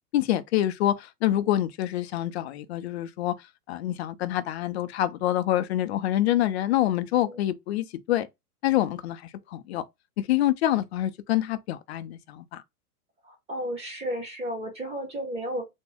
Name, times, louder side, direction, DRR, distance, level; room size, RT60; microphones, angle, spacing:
voice 1, 0.1-3.3 3.7-8.3 8.6-9.8 10.3-12.6, left 13 dB, 45° left, 0.4 m, -26 dB
voice 2, 13.2-15.7, equal, 15° right, 1.1 m, -33 dB
3.5 x 2.1 x 3.3 m
hypercardioid pair, 140°, 46 cm